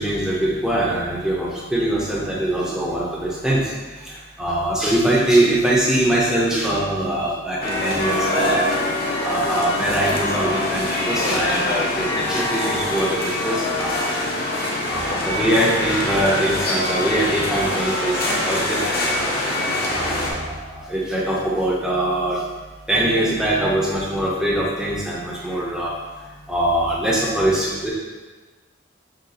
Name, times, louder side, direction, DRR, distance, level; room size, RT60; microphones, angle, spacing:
voice 1, 0.0-3.7 4.0-8.7 9.1-14.2 14.9-19.3 19.8-22.4 22.9-25.9 26.5-27.9, right 1 dB, 5° right, -5 dB, 0.5 m, -22 dB
sound 1, 7.6-20.3, left 1 dB, 50° left, 0.7 m, -24 dB
6.3 x 2.4 x 2.7 m, 1.3 s
head